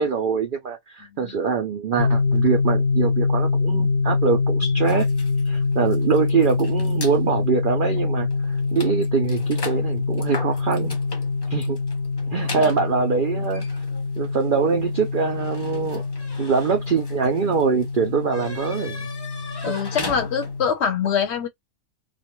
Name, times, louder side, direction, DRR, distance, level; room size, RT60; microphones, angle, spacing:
voice 1, 0.0-5.1 5.5-11.0 11.5-11.8 12.3-13.7 14.2-16.0 16.4-19.1 19.5-19.7, right 6 dB, 75° right, 0.4 m, -23 dB
sound 1, 2.0-20.7, left 4 dB, 85° left, 0.4 m, -25 dB
sound 2, 4.8-7.2 7.9-8.0 8.3-20.8, left 3 dB, 30° left, 0.5 m, -39 dB
voice 2, 19.6-21.5, left 7 dB, 60° left, 0.9 m, -24 dB
2.4 x 2.2 x 3.0 m
omnidirectional pair, 1.4 m